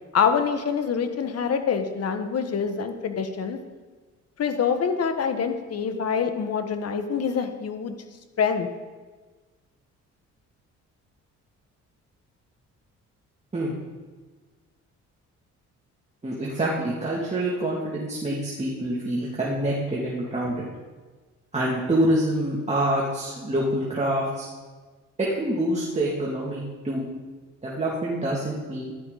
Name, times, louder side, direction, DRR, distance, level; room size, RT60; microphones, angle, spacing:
voice 1, 0.1-3.6 4.4-7.9 8.4-8.7, left 6 dB, 55° left, 7 dB, 1.5 m, -25 dB
voice 2, 16.2-20.7 21.5-24.5 25.2-27.0 27.6-28.9, right 1 dB, 20° right, -5 dB, 2.7 m, -26 dB
15.5 x 12.0 x 4.2 m, 1.4 s
cardioid pair, 90°, 30 cm